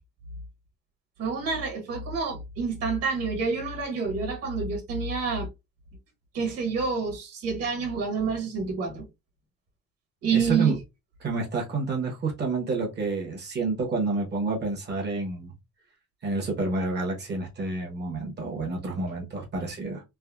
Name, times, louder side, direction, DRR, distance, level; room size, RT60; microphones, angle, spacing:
voice 1, 1.2-5.5 6.3-9.1 10.2-10.8, right 5 dB, 55° right, 1.3 m, -28 dB
voice 2, 10.3-10.7 11.2-15.5 16.2-20.0, right 3 dB, 35° right, 0.8 m, -29 dB
3.4 x 2.1 x 2.2 m
cardioid pair, 165°, 30 cm